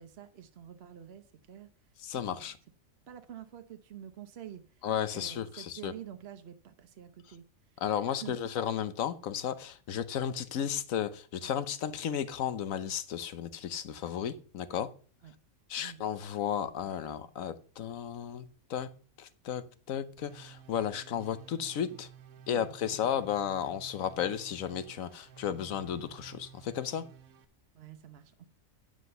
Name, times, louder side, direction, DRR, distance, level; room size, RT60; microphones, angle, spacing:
voice 1, 0.0-1.7 2.1-2.5 3.1-4.9 5.1-7.8 8.2-8.4 15.2-15.3 15.8-16.1 21.9-22.0 22.5-23.2 27.7-28.5, right 10 dB, 55° right, 0.9 m, -48 dB
voice 2, 2.0-2.6 4.8-5.9 7.8-14.9 15.7-18.9 19.2-19.6 19.9-22.1 22.5-27.0, left 9 dB, 75° left, 1.2 m, -34 dB
sound 1, 20.2-27.4, right 8 dB, 90° right, 1.2 m, -53 dB
9.7 x 5.1 x 6.6 m
omnidirectional pair, 1.4 m